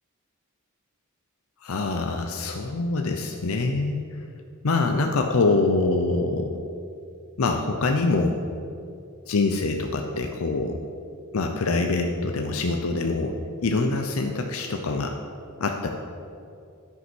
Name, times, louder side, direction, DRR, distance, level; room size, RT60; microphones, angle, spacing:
voice 1, 1.6-4.0 4.6-6.5 7.4-8.4 9.3-10.8 11.3-13.3 13.6-15.1 15.6-15.9, left 3 dB, 80° left, 4 dB, 0.6 m, -24 dB
11.0 x 5.4 x 6.1 m, 2.5 s
head